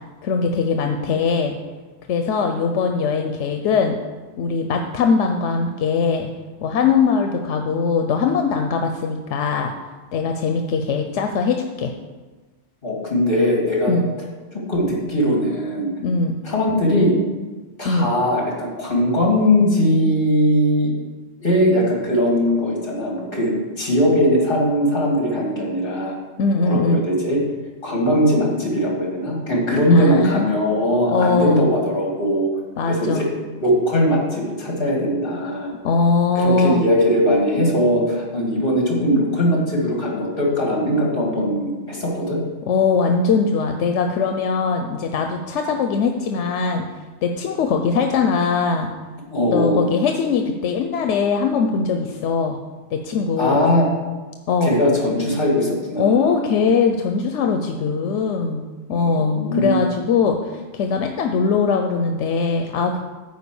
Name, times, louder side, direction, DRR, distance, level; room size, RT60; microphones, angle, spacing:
voice 1, 0.2-1.6 2.1-4.0 4.4-6.3 6.6-9.7 10.1-11.9 13.9-14.1 16.0-16.4 17.8-18.1 26.4-27.0 29.7-30.4 31.1-31.6 32.8-33.3 35.8-36.8 42.7-46.8 47.2-48.9 49.5-52.6 52.9-53.6 54.5-54.8 56.0-63.0, left 5 dB, 85° left, 5 dB, 1.0 m, -21 dB
voice 2, 12.8-13.9 14.5-15.9 16.4-17.2 17.8-20.9 21.4-23.5 23.8-26.2 26.6-27.4 27.8-32.5 32.9-33.3 33.6-35.7 36.3-42.4 49.3-49.9 53.4-53.9 54.6-56.6 58.9-59.8, equal, 50° left, -2 dB, 2.7 m, -20 dB
9.2 x 4.7 x 6.9 m, 1.3 s
omnidirectional pair, 1.2 m